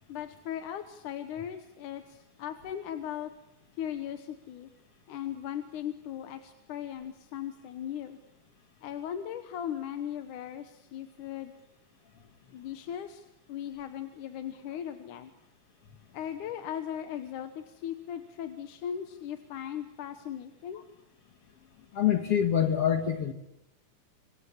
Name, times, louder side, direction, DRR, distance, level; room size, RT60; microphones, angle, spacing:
voice 1, 0.1-3.3 3.8-4.7 5.1-8.2 8.8-11.5 12.5-15.3 16.1-20.8, left 10 dB, 75° left, 9 dB, 2.6 m, -38 dB
voice 2, 21.9-23.3, left 9 dB, 55° left, 6 dB, 2.3 m, -25 dB
27.0 x 25.5 x 7.3 m, 0.84 s
omnidirectional pair, 3.6 m